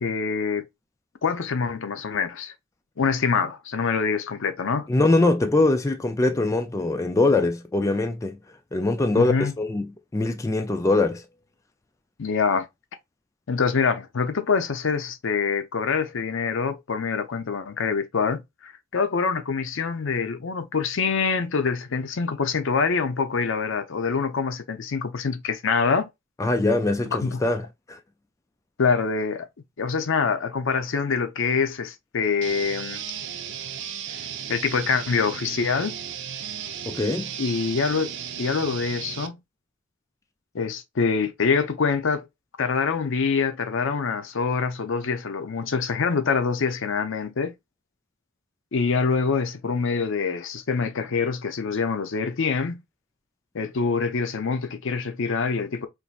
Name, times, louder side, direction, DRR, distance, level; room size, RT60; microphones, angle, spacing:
voice 1, 0.0-0.7 1.2-2.5 3.0-4.9 9.1-9.5 12.2-12.7 13.5-26.1 27.2-27.4 28.8-29.5 29.8-33.0 34.5-36.0 37.4-39.4 40.5-42.3 42.6-47.6 48.7-52.8 53.5-55.9, left 5 dB, 65° left, 0.6 m, -25 dB
voice 2, 4.9-8.4 8.7-11.2 26.4-27.6 27.9-28.0 36.9-37.3, left 2 dB, 15° left, 0.3 m, -22 dB
sound 1, 32.4-39.3, right 8 dB, 60° right, 0.5 m, -35 dB
4.0 x 2.6 x 2.4 m
head